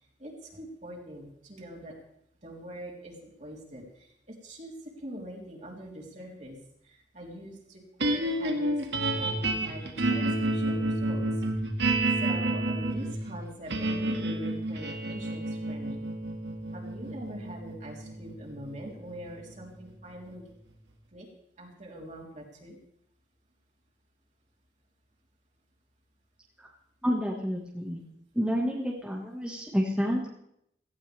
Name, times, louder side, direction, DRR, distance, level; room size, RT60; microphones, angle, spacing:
voice 1, 0.2-1.9 2.4-6.6 6.8-11.2 12.2-16.0 16.7-20.4 21.1-21.3 21.6-22.8, right 1 dB, 45° right, -2 dB, 3.7 m, -43 dB
sound 1, 8.0-20.3, right 2 dB, 90° right, 2.1 m, -30 dB
voice 2, 27.0-28.0 28.4-30.3, equal, 5° right, -3 dB, 1.8 m, -29 dB
17.5 x 15.5 x 3.5 m, 0.75 s
head